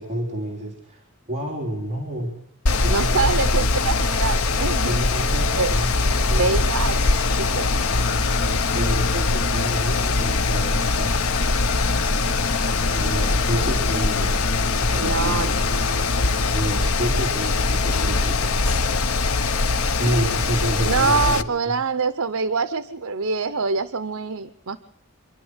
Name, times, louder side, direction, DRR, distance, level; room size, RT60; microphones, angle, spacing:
voice 1, 0.0-2.3 2.8-3.3 3.6-3.7 4.8-6.5 8.7-11.1 12.9-14.4 14.8-15.6 16.5-18.6 20.0-21.8, equal, 30° right, -1 dB, 3.9 m, -29 dB
Mechanical fan, 2.7-21.4, left 3 dB, 85° left, 1.1 m, -22 dB
voice 2, 2.9-5.0 5.6-5.7 6.4-7.7 15.0-15.5 16.3-16.4 20.0-20.3 20.8-24.8, right 4 dB, 75° right, 12 dB, 0.9 m, -25 dB
Singing, 6.1-16.8, left 2 dB, 55° left, 1.0 m, -33 dB
27.5 x 12.0 x 8.1 m, 0.71 s
head